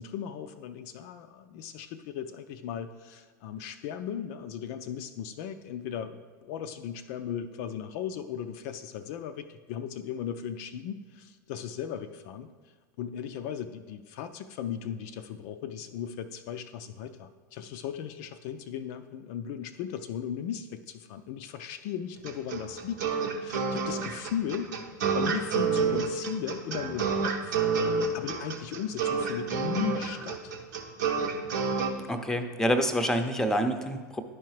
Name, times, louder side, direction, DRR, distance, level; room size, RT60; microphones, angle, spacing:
voice 1, 0.0-12.5 13.0-23.0 23.4-24.7 25.1-27.6 28.1-30.5, left 8 dB, 55° left, 8 dB, 0.4 m, -37 dB
sound 1, 22.3-31.9, right 5 dB, 70° right, 0.8 m, -29 dB
voice 2, 32.1-34.2, equal, 5° left, 6 dB, 0.6 m, -27 dB
11.0 x 4.6 x 3.1 m, 1.5 s
hypercardioid pair, 85°, 10 cm